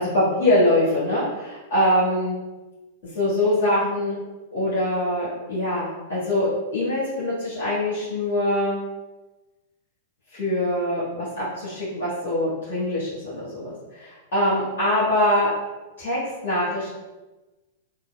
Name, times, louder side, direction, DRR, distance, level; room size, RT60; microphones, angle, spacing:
voice 1, 0.0-2.3 3.0-4.2 4.5-8.8 10.3-15.5 16.0-16.9, left 1 dB, 65° left, -11 dB, 1.5 m, -23 dB
3.8 x 2.4 x 2.2 m, 1.1 s
hypercardioid pair, 100°, 0 cm